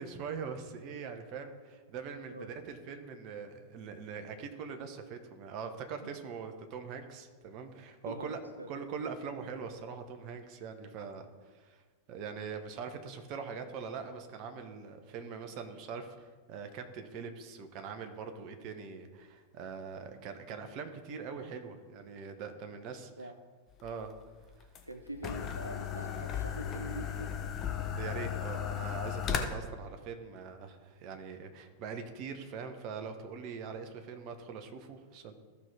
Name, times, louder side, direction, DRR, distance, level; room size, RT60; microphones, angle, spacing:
voice 1, 0.0-8.4 8.7-11.3 11.5-11.8 12.1-23.3 23.8-24.1 28.0-35.3, right 6 dB, 40° right, 6 dB, 1.2 m, -42 dB
voice 2, 8.1-8.7 23.2-23.4 24.9-27.3, right 1 dB, 85° right, 7 dB, 0.5 m, -44 dB
sound 1, 23.8-29.4, left 9 dB, 30° left, 1.0 m, -36 dB
14.5 x 5.7 x 3.5 m, 1.4 s
figure-of-eight pair, 90°, 0 cm